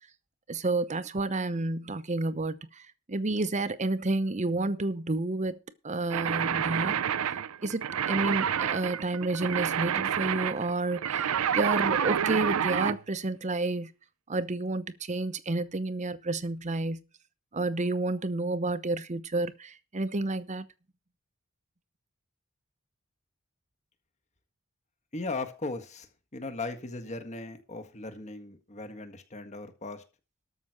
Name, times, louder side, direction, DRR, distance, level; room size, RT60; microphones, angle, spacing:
voice 1, 0.5-7.4 7.6-7.8 8.1-13.9 14.3-17.0 17.5-20.6, right 2 dB, 35° right, 0.8 m, -30 dB
sound 1, 6.1-13.0, right 8 dB, 90° right, 0.5 m, -29 dB
voice 2, 25.1-30.0, left 3 dB, 35° left, 1.7 m, -38 dB
13.0 x 6.0 x 6.5 m
head